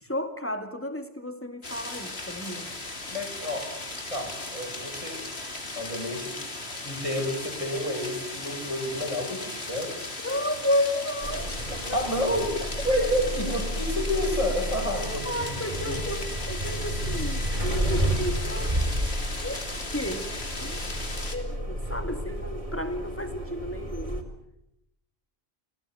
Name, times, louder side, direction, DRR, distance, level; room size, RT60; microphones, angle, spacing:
voice 1, 0.0-2.7 10.2-11.6 11.9-12.1 15.2-18.8 19.4-19.6 19.9-20.8 21.3-24.3, left 1 dB, 10° left, 7 dB, 2.4 m, -32 dB
sound 1, 1.6-21.4, left 2 dB, 75° left, 3.4 m, -37 dB
voice 2, 3.1-3.7 4.1-5.2 5.7-6.3 6.8-9.9 11.9-12.5 12.8-16.0, left 1 dB, 30° left, 0 dB, 7.9 m, -30 dB
sound 2, 11.2-24.2, equal, 30° right, 3.9 m, -31 dB
28.0 x 19.0 x 9.3 m, 0.84 s
omnidirectional pair, 1.1 m